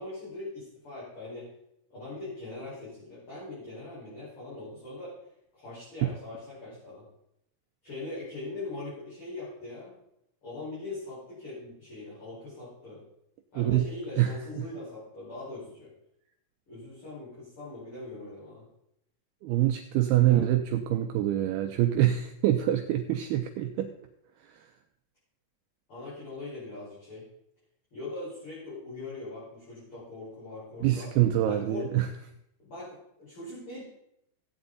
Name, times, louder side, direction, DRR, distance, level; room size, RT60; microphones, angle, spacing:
voice 1, 0.0-1.5 1.9-5.1 5.5-7.0 7.8-10.0 10.4-13.0 13.5-15.9 16.7-18.7 20.2-20.5 25.9-27.2 27.9-31.1 31.4-32.0 32.6-33.8, left 2 dB, 30° left, -10 dB, 5.5 m, -41 dB
voice 2, 14.2-14.6 19.4-23.9 24.5-24.7 30.8-32.1, right 13 dB, 90° right, 5 dB, 2.2 m, -25 dB
15.0 x 8.8 x 4.0 m, 0.79 s
omnidirectional pair, 5.2 m